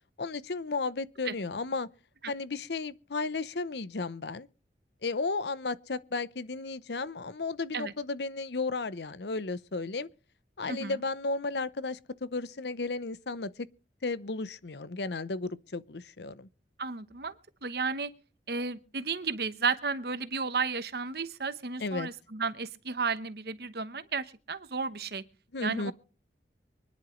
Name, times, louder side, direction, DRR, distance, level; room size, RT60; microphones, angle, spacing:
voice 1, 0.2-1.9 2.3-4.5 5.0-10.1 10.6-13.7 14.0-16.5 21.8-22.1 25.5-25.9, left 3 dB, 70° left, 0.8 m, -34 dB
voice 2, 16.8-18.1 18.5-25.2 25.6-25.9, right 4 dB, 60° right, 1.0 m, -33 dB
24.5 x 11.0 x 3.2 m
head